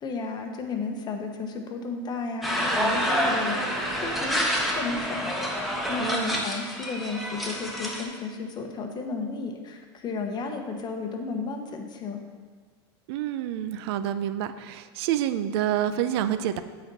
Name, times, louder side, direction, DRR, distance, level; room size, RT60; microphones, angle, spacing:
voice 1, 0.0-3.6 4.0-4.4 4.7-12.2, left 4 dB, 30° left, 3 dB, 1.1 m, -33 dB
sound 1, 2.4-8.0, equal, ahead, 1.3 m, -28 dB
voice 2, 6.0-6.4 13.1-16.6, right 11 dB, 65° right, 11 dB, 0.5 m, -28 dB
8.4 x 4.3 x 5.4 m, 1.5 s
supercardioid pair, 115°, 14 cm